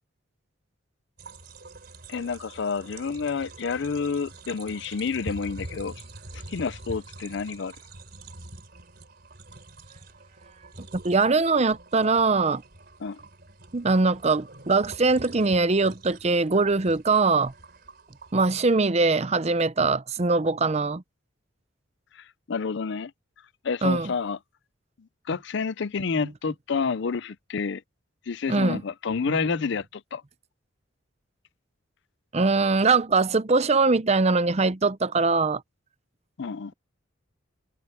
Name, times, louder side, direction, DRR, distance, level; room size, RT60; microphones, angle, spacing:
sound 1, 1.2-18.3, right 2 dB, 50° right, 3.9 m, -45 dB
voice 1, 2.1-5.9 6.5-7.7 13.0-13.2 22.2-23.1 23.6-24.4 25.0-27.8 28.3-30.2 36.4-36.7, left 5 dB, 60° left, 0.5 m, -29 dB
voice 2, 10.8-12.6 13.7-17.5 18.3-21.0 23.8-24.1 26.1-26.3 28.5-28.8 29.3-29.5 32.3-35.6, right 3 dB, 30° right, 0.6 m, -22 dB
head